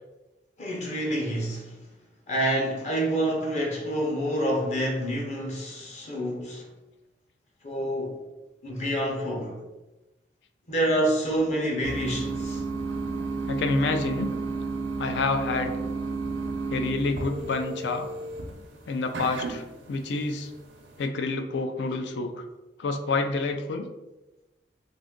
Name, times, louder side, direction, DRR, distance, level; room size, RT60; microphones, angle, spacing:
voice 1, 0.6-1.8 2.3-6.7 7.6-8.2 8.6-9.6 10.7-12.6, right 1 dB, 40° left, 0.6 m, -27 dB
sound 1, 11.8-21.1, right 3 dB, 85° right, 0.6 m, -32 dB
voice 2, 13.5-14.3 15.0-15.7 16.7-18.1 18.9-20.5 21.0-22.4 22.8-23.9, left 3 dB, 80° left, 0.4 m, -28 dB
2.5 x 2.4 x 3.6 m
head